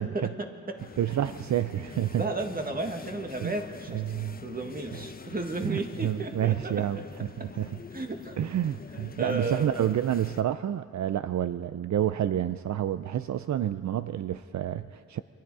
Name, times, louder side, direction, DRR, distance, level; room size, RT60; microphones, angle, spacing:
voice 1, 0.0-0.8 2.1-4.1 4.4-7.1 7.4-7.5 7.9-8.6 9.2-9.7, right 2 dB, 30° right, 4 dB, 2.0 m, -34 dB
sound 1, 0.8-10.4, left 5 dB, 30° left, 0.8 m, -45 dB
voice 2, 1.0-2.2 3.4-3.5 3.9-4.4 5.6-7.0 7.4-7.7 8.4-15.2, right 11 dB, 70° right, 12 dB, 0.5 m, -29 dB
28.5 x 24.5 x 4.9 m, 2.2 s
wide cardioid pair, 105°, 30 cm